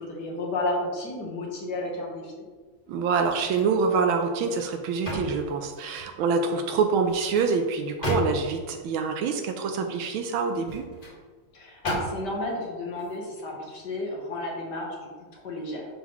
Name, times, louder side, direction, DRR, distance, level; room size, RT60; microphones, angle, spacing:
voice 1, 0.0-2.4 11.5-15.8, left 2 dB, 60° left, -1 dB, 1.4 m, -32 dB
voice 2, 2.9-10.8, right 5 dB, 75° right, 5 dB, 1.3 m, -26 dB
sound 1, 3.0-3.8 4.2-6.2 6.9-8.7 10.4-11.2 11.8-12.4 12.9-13.1, equal, 25° left, 1.6 m, -35 dB
10.5 x 3.8 x 3.0 m, 1.5 s
omnidirectional pair, 2.4 m